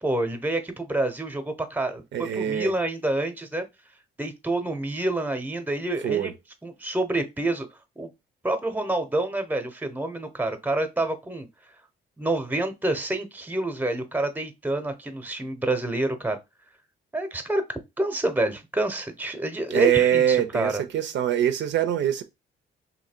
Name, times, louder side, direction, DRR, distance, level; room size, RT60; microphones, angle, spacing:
voice 1, 0.0-3.6 4.2-6.3 6.6-7.7 8.0-8.1 8.4-11.5 12.2-16.4 17.1-17.6 18.0-20.8, right 2 dB, 10° right, 0.8 m, -27 dB
voice 2, 2.1-2.7 6.0-6.3 19.7-22.2, right 10 dB, 65° right, 0.5 m, -23 dB
2.8 x 2.6 x 4.3 m
cardioid pair, 90°, 20 cm